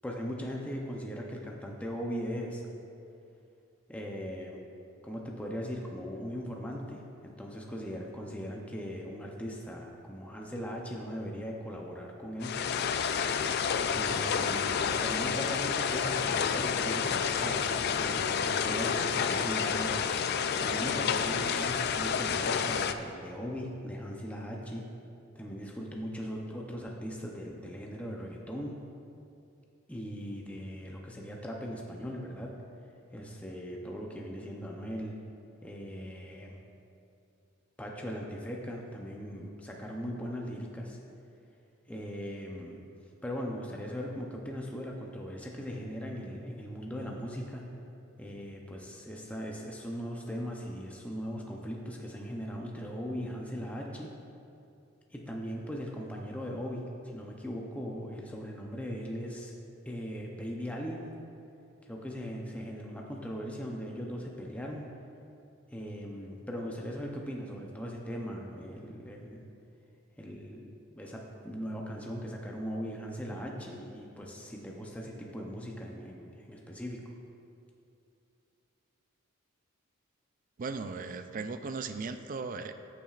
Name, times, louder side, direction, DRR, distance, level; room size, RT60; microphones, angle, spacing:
voice 1, 0.0-2.6 3.9-4.6 5.0-12.5 13.9-19.9 20.2-24.9 25.3-28.8 29.9-32.5 33.1-35.1 35.6-36.5 37.8-41.0 41.9-42.8 43.2-47.7 48.2-54.1 55.1-59.5 59.9-61.1 61.8-64.9 65.7-69.5 70.2-70.7 70.9-77.0, equal, 5° left, -1 dB, 0.6 m, -39 dB
sound 1, 12.4-22.9, left 6 dB, 50° left, 0.3 m, -29 dB
voice 2, 80.6-82.7, right 4 dB, 40° right, 9 dB, 0.4 m, -37 dB
14.0 x 7.1 x 2.4 m, 2.7 s
head